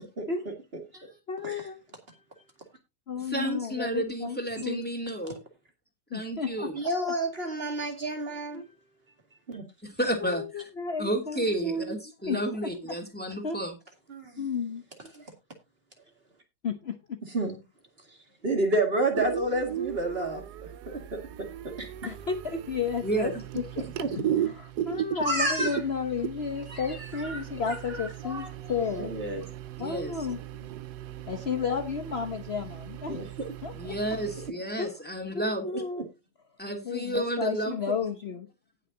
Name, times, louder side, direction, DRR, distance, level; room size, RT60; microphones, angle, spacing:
voice 1, 1.3-1.8 3.1-4.8 6.1-6.7 7.0-7.1 8.5-8.6 10.2-11.9 12.3-12.7 13.4-13.6 14.4-14.8 16.6-17.2 22.0-29.1 29.8-30.4 31.3-33.2 33.6-34.0 34.8-34.9 35.3-36.1 36.8-38.5, left 5 dB, 45° left, 1.1 m, -33 dB
voice 2, 3.3-5.4 6.1-6.7 9.8-10.7 11.0-13.7 23.0-23.3 29.8-30.1 33.7-35.7 36.6-38.1, right 1 dB, 5° left, 2.7 m, -31 dB
voice 3, 6.7-8.6 9.5-9.6 14.1-14.5 15.1-15.2 17.3-17.6 18.1-18.2 18.4-21.9 24.0-24.1 25.2-25.8 26.7-26.8 27.1-27.8 28.2-28.5 29.0-29.5 33.1-33.3 35.7-36.0, right 1 dB, 40° right, 2.3 m, -30 dB
sound 1, 19.1-34.5, right 11 dB, 90° right, 1.3 m, -37 dB
18.5 x 6.6 x 2.8 m
omnidirectional pair, 1.7 m